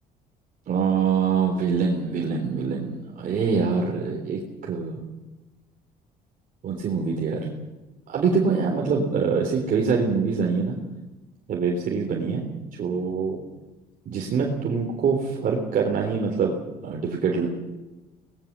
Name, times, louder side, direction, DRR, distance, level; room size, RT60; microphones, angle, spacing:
voice 1, 0.7-5.0 6.6-7.5 8.1-10.8 11.5-12.5 12.8-13.4 14.1-16.5 16.8-17.5, right 5 dB, 55° right, 0 dB, 3.8 m, -24 dB
23.5 x 19.5 x 7.5 m, 1.1 s
cardioid pair, 110°, 17 cm